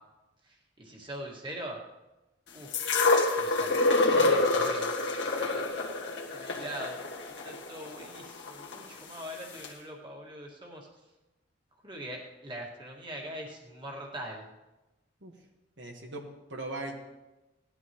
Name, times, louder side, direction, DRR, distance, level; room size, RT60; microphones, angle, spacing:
voice 1, 0.5-1.8 2.5-2.8 3.4-5.9 6.3-10.9 11.8-14.4, equal, 25° right, -1 dB, 1.9 m, -42 dB
sound 1, 2.7-8.8 9.6-9.7, left 2 dB, 65° left, 1.8 m, -27 dB
voice 2, 15.8-17.0, right 2 dB, 65° right, 1 dB, 1.5 m, -39 dB
18.0 x 12.0 x 3.1 m, 1.0 s
head